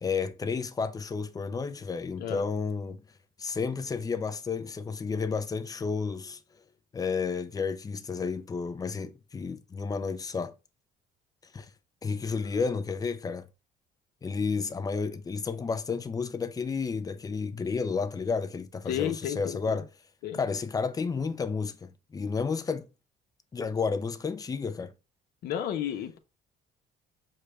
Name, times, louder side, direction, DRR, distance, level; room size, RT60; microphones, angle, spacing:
voice 1, 0.0-3.0 3.4-6.4 6.9-10.5 11.5-11.7 12.0-13.5 14.2-19.9 20.4-22.9 23.5-24.9, left 5 dB, 20° left, 0.5 m, -31 dB
voice 2, 12.3-12.6 18.9-19.8 20.2-20.4 25.4-26.2, left 10 dB, 70° left, 0.8 m, -33 dB
6.5 x 2.3 x 3.2 m
cardioid pair, 110°, 17 cm